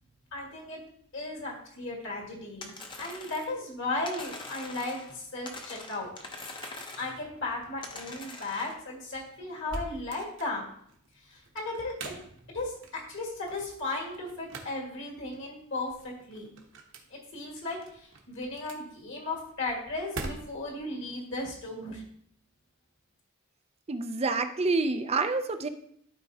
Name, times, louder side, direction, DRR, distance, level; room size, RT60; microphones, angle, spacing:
voice 1, 0.3-0.8 1.1-2.7 3.0-6.1 7.0-10.7 11.2-12.1 12.5-15.9 16.3-16.5 17.1-22.0, left 2 dB, 55° left, -2 dB, 1.8 m, -36 dB
sound 1, 2.6-3.6 4.1-5.2 5.5-7.2 7.8-8.8, left 3 dB, 20° left, 0.7 m, -43 dB
sound 2, 5.5-20.8, right 2 dB, 55° right, 1.1 m, -46 dB
voice 2, 23.9-25.7, right 3 dB, 25° right, 9 dB, 0.4 m, -28 dB
12.0 x 4.3 x 2.8 m, 0.66 s
head